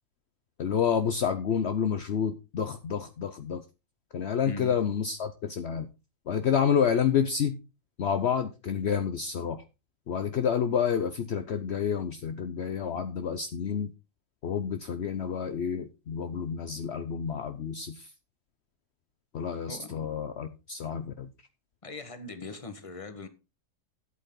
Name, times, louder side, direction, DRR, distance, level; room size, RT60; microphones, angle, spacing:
voice 1, 0.6-3.6 4.1-5.9 6.3-7.6 8.0-9.6 10.1-13.9 14.4-18.1 19.3-21.3, left 7 dB, 60° left, 1.0 m, -29 dB
voice 2, 19.7-20.1 21.8-23.3, left 3 dB, 25° left, 1.4 m, -40 dB
12.5 x 8.2 x 3.8 m
omnidirectional pair, 1.4 m